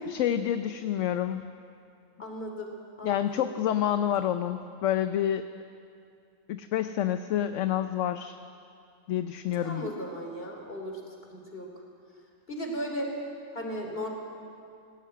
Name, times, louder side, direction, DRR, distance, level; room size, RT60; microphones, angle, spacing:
voice 1, 0.1-1.5 3.0-5.5 6.5-8.4 9.1-9.9, left 10 dB, 65° left, 9 dB, 0.9 m, -28 dB
voice 2, 2.2-2.7 3.0-3.5 9.6-11.0 11.3-11.7 12.5-13.1 13.5-14.1, equal, 40° left, 2 dB, 3.5 m, -36 dB
18.5 x 16.5 x 9.4 m, 2.5 s
omnidirectional pair, 1.5 m